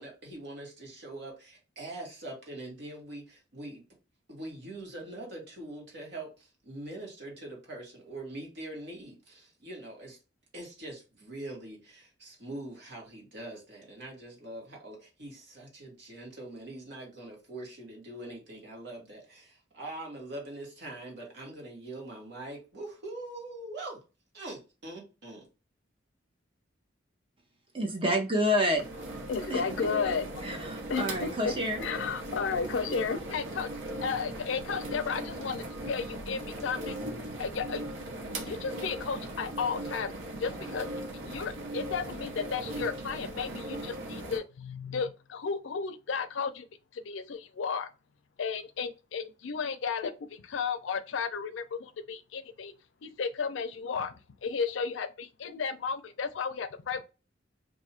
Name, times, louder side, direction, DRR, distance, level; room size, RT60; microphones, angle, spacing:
voice 1, 0.0-3.8 4.3-10.2 10.5-24.0 24.3-25.5, right 2 dB, 65° right, 1.4 m, -43 dB
voice 2, 27.7-28.8 29.5-30.1 30.4-31.9, equal, 30° right, 0.7 m, -29 dB
sound 1, 28.7-44.4, right 1 dB, 85° right, 0.8 m, -38 dB
voice 3, 29.3-30.3 30.9-31.5 31.8-33.7 34.0-37.0 37.4-37.8 38.5-40.1 40.4-40.9 41.3-46.6 47.1-47.9 48.4-50.1 50.5-51.6 52.1-52.7 53.0-54.1 54.4-57.0, left 5 dB, 75° left, 0.4 m, -33 dB
2.6 x 2.4 x 4.2 m
head